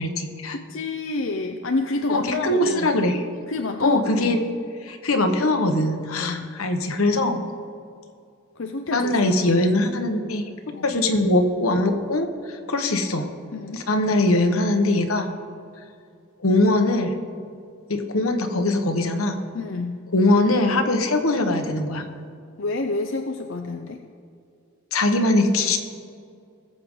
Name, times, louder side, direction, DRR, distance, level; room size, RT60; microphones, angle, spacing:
voice 1, 0.0-0.6 2.1-3.2 3.8-4.4 4.8-7.4 8.9-10.4 10.8-13.3 13.7-15.3 16.4-17.2 17.9-19.4 20.1-22.0 24.9-25.8, left 2 dB, 80° left, 6 dB, 1.2 m, -21 dB
voice 2, 0.5-3.0 3.5-4.4 6.1-6.5 7.3-7.4 8.6-9.4 10.7-11.0 13.5-13.8 19.5-20.0 22.6-24.0, left 3 dB, 60° left, 5 dB, 0.6 m, -29 dB
20.0 x 7.7 x 3.8 m, 2.4 s
head